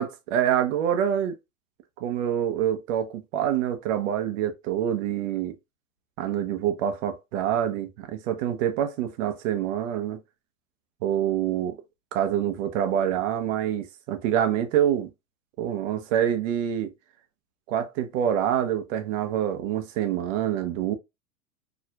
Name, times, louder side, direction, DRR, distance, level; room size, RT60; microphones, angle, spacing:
voice 1, 0.0-1.4 2.0-5.5 6.2-10.2 11.0-11.8 12.1-15.1 15.6-16.9 17.7-21.0, right 10 dB, 65° right, 1.1 m, -26 dB
4.9 x 3.1 x 2.3 m
hypercardioid pair, 115°, 41 cm